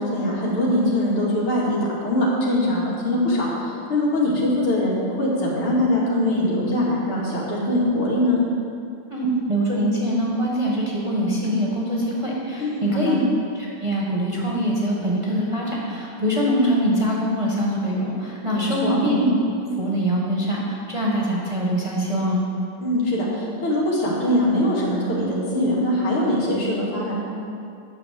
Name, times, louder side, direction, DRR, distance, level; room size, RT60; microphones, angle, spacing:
voice 1, 0.0-8.4 12.6-13.2 18.4-19.0 22.8-27.2, left 1 dB, 85° left, -5 dB, 3.2 m, -22 dB
voice 2, 9.1-13.2 13.6-22.4, equal, 15° right, -5 dB, 1.6 m, -23 dB
10.5 x 6.3 x 7.7 m, 2.5 s
omnidirectional pair, 2.3 m